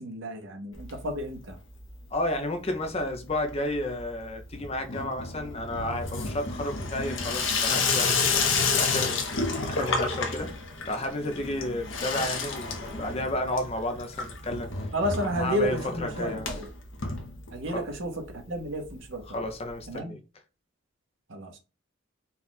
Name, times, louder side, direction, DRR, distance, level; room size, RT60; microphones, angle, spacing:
voice 1, 0.0-1.6 14.9-16.7 17.5-19.2 19.9-20.1 21.3-21.5, equal, 60° right, 1.0 m, -31 dB
Water tap faucet / Sink (filling or washing), 0.7-1.5 1.8-2.3 2.6-17.9 18.2-18.3 18.5-18.6 18.8-18.9 20.0-20.1, left 4 dB, 60° left, 0.9 m, -31 dB
voice 2, 2.1-8.4 8.8-10.5 10.9-14.7 15.2-16.6 17.7-17.9 19.3-20.2, left 1 dB, 30° left, 0.5 m, -32 dB
4.2 x 2.4 x 3.9 m
head